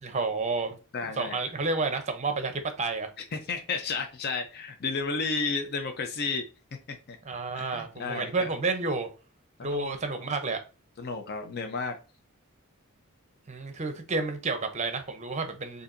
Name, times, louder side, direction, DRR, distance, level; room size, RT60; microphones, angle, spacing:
voice 1, 0.0-0.8 1.2-3.1 7.2-9.1 9.6-10.6 13.5-15.8, right 3 dB, 30° right, 0.7 m, -30 dB
voice 2, 0.9-1.4 3.2-6.5 6.9-7.2 7.6-8.5 9.6-10.3 11.0-12.0, left 4 dB, 45° left, 0.5 m, -33 dB
6.9 x 2.6 x 2.5 m
head